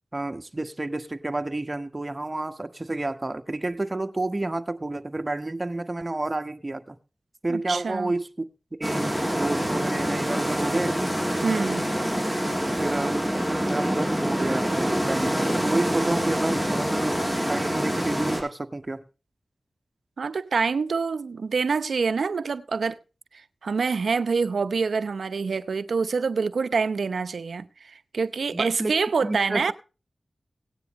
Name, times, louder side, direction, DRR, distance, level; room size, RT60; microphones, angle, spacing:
voice 1, 0.1-7.0 7.4-8.3 8.7-11.0 12.7-17.2 17.5-19.0 28.5-28.9 29.2-29.7, right 2 dB, 35° right, 1.4 m, -30 dB
voice 2, 7.5-8.1 11.4-11.9 20.2-23.0 23.6-29.7, right 5 dB, 85° right, 0.7 m, -26 dB
sound 1, 8.8-18.4, equal, 15° left, 7.0 m, -26 dB
17.5 x 9.6 x 3.1 m
cardioid pair, 45°, 0 cm